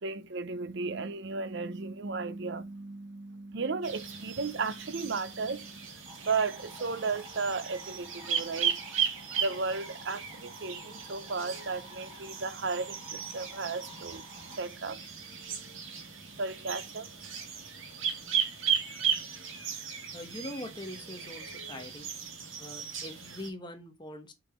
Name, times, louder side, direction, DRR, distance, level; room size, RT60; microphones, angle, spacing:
voice 1, 0.0-17.4, right 4 dB, 55° right, 0.7 m, -35 dB
sound 1, 3.8-23.5, right 7 dB, 75° right, 2.2 m, -36 dB
sound 2, 6.0-14.6, left 1 dB, 20° right, 2.3 m, -52 dB
voice 2, 20.1-22.1 22.6-24.3, left 1 dB, 20° left, 1.2 m, -42 dB
6.4 x 4.8 x 4.3 m
head